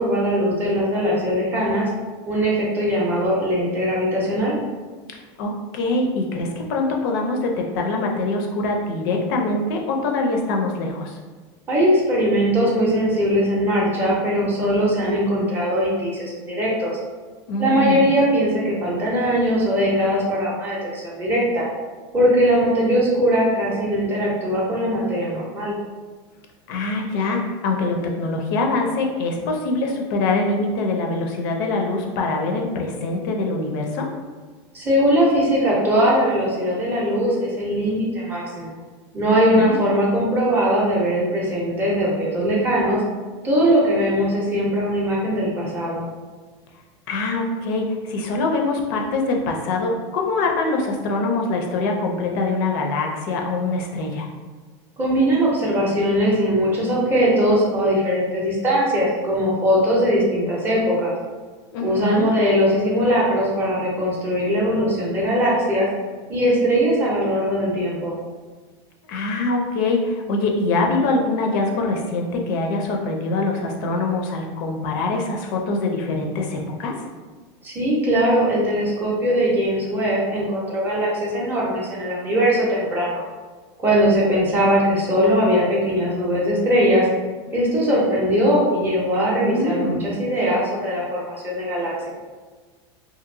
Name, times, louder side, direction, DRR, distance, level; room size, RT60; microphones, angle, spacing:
voice 1, 0.0-1.9 2.3-4.6 11.7-17.0 17.6-21.6 22.1-25.7 34.7-38.7 39.1-43.0 43.4-46.1 55.0-61.1 61.8-65.9 66.3-68.1 77.6-83.2 83.8-87.1 87.5-92.1, equal, 15° right, -5 dB, 0.5 m, -20 dB
voice 2, 5.4-11.2 17.5-18.1 26.7-34.1 39.3-39.8 47.1-54.3 61.7-62.2 69.1-76.9 89.4-90.1, left 2 dB, 50° left, 1 dB, 0.4 m, -24 dB
2.7 x 2.6 x 2.5 m, 1.4 s
supercardioid pair, 170°, 14 cm